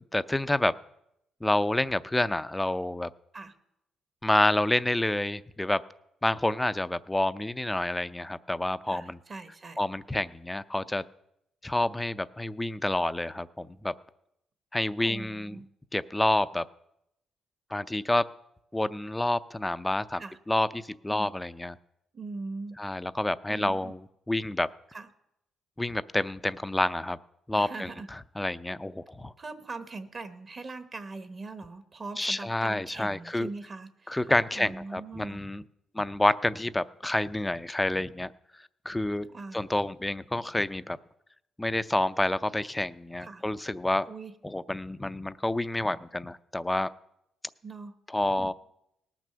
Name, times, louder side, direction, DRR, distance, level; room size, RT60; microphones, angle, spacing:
voice 1, 0.1-0.7 1.4-3.1 4.2-5.8 6.2-9.2 9.8-11.0 11.6-13.9 14.7-15.6 15.9-16.7 17.7-18.2 18.7-21.8 22.8-24.0 24.3-24.7 25.8-27.2 27.5-29.3 32.2-33.5 34.1-35.6 35.9-38.3 38.8-39.3 39.5-41.0 41.6-44.1 44.4-46.9 48.1-48.5, left 1 dB, 10° left, 14 dB, 0.5 m, -28 dB
voice 2, 8.9-9.8 15.0-15.6 20.2-20.4 21.1-21.4 22.1-22.8 23.5-23.9 24.9-25.1 27.5-28.1 29.4-34.3 34.5-35.4 39.3-39.6 43.2-43.4 44.0-44.3 47.6-47.9 48.3-48.5, right 3 dB, 35° right, 10 dB, 1.0 m, -41 dB
18.5 x 6.2 x 6.8 m, 0.81 s
cardioid pair, 90°, 0 cm